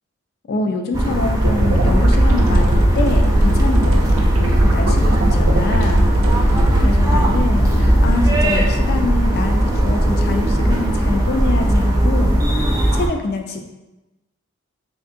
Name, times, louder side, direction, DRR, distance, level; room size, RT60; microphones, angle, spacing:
voice 1, 0.5-6.1 6.4-13.7, left 2 dB, 50° left, 5 dB, 0.3 m, -25 dB
sound 1, 0.9-13.1, right 1 dB, 15° right, 0.4 m, -17 dB
sound 2, 1.4-6.8, right 1 dB, 90° right, 0.5 m, -19 dB
sound 3, 1.8-9.1, equal, 90° left, 0.7 m, -24 dB
3.5 x 2.8 x 2.5 m, 1.0 s
head